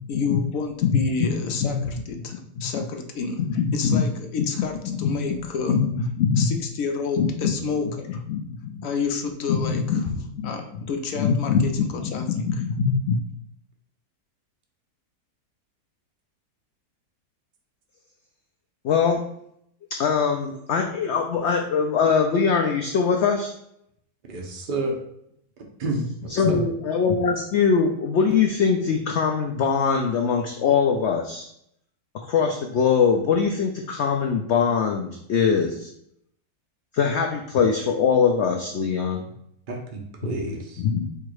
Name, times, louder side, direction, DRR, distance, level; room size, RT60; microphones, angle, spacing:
voice 1, 0.1-3.4 3.7-5.8 6.4-8.2 8.8-10.1 10.4-12.5, left 4 dB, 70° left, 5 dB, 0.9 m, -30 dB
voice 2, 1.6-2.0 2.6-2.8 3.4-4.1 4.4-5.1 5.4-5.9 6.2-6.5 7.2-7.5 8.3-8.8 9.5-10.5 11.1-13.2 18.8-19.3 20.0-23.5 26.3-31.5 32.3-35.9 36.9-39.3 40.2-40.3 40.8-41.1, left 6 dB, 85° left, 3 dB, 0.6 m, -22 dB
voice 3, 24.3-25.0 25.8-26.6 39.7-40.8, right 2 dB, 40° right, 1 dB, 0.8 m, -30 dB
4.6 x 2.5 x 4.6 m, 0.73 s
omnidirectional pair, 1.7 m